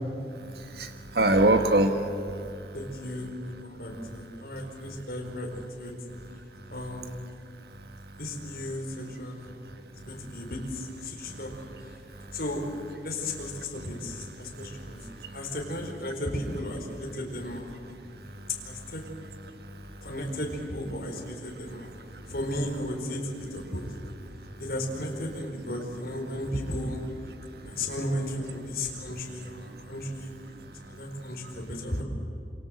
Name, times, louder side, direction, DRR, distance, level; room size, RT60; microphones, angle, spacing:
voice 1, 0.3-2.8 3.9-5.0 6.1-7.2 7.6-8.3 8.6-9.1 9.4-10.5 11.0-12.4 13.3-15.6 17.7-20.1 21.2-22.3 23.7-24.7 25.7-25.8 27.3-27.9 28.7-31.7, right 1 dB, 65° right, 7 dB, 1.5 m, -33 dB
voice 2, 2.7-5.9 6.7-7.1 8.2-9.5 10.1-11.5 12.3-12.6 13.0-15.0 15.3-17.7 18.6-19.0 20.0-21.9 22.3-23.9 24.6-27.0 27.6-30.3 30.9-32.0, left 1 dB, 55° left, 0 dB, 4.5 m, -34 dB
27.5 x 26.5 x 7.9 m, 2.5 s
head